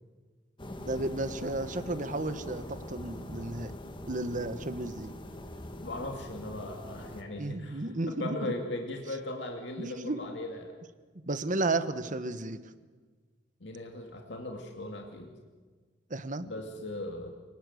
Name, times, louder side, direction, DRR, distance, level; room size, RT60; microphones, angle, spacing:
sound 1, 0.6-7.2, left 1 dB, 25° left, 1.8 m, -42 dB
voice 1, 0.8-3.7 4.1-5.1 7.4-8.5 9.8-10.2 11.3-12.6 16.1-16.5, right 2 dB, 45° right, 12 dB, 1.3 m, -33 dB
voice 2, 5.8-10.7 13.6-15.3 16.5-17.3, left 1 dB, 70° left, 2 dB, 2.4 m, -38 dB
28.0 x 19.5 x 8.0 m, 1.5 s
head